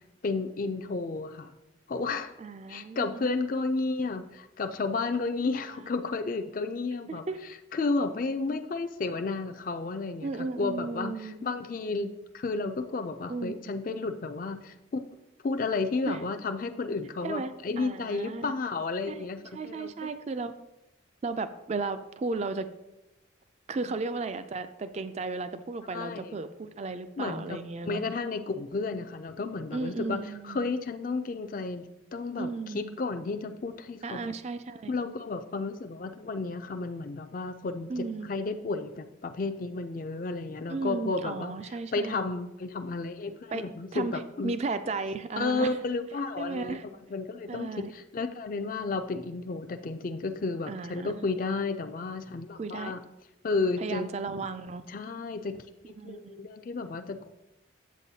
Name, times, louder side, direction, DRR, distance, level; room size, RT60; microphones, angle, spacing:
voice 1, 0.2-1.5 1.9-2.3 2.7-7.2 7.7-10.3 10.6-15.0 15.4-19.9 23.8-23.9 25.9-26.4 27.2-27.6 27.8-31.8 32.1-34.3 34.9-41.5 41.9-44.5 45.4-46.8 47.1-53.0 53.4-54.1 54.9-55.6 55.9-57.3, left 3 dB, 45° left, 8 dB, 0.4 m, -32 dB
voice 2, 2.4-3.3 7.1-7.4 10.2-11.5 13.3-13.7 16.1-16.2 17.2-17.5 17.8-18.5 19.1-19.3 19.5-20.5 21.2-22.7 23.7-28.0 29.7-30.7 32.4-33.0 34.0-34.9 37.9-38.3 40.7-42.2 43.5-43.7 43.9-45.8 46.4-46.8 47.5-47.9 50.7-51.3 52.6-52.9 53.8-54.9 56.0-56.5, right 3 dB, 35° right, 11 dB, 0.3 m, -35 dB
8.3 x 8.0 x 2.8 m, 0.96 s
head